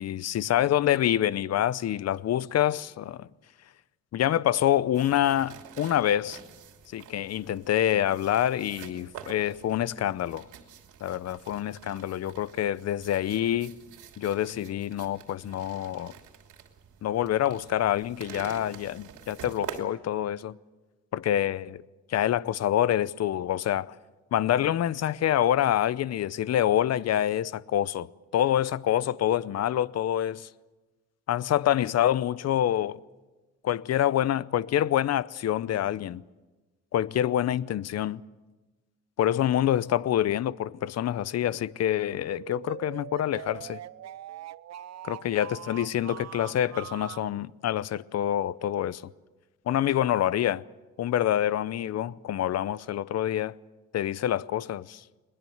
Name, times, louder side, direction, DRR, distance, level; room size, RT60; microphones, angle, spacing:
voice 1, 0.0-3.3 4.1-6.4 6.9-10.5 11.0-13.7 14.2-16.1 17.0-20.6 21.1-21.8 22.1-24.0 24.3-30.5 31.3-33.0 33.6-36.2 36.9-38.2 39.2-43.8 45.0-49.1 49.7-50.6 51.0-53.6 53.9-55.0, left 11 dB, 55° left, 0.7 m, -26 dB
sound 1, 4.9-19.8, right 8 dB, 80° right, 2.9 m, -47 dB
sound 2, 42.3-47.3, right 12 dB, 60° right, 0.7 m, -42 dB
21.0 x 20.5 x 7.9 m
cardioid pair, 90°, 30 cm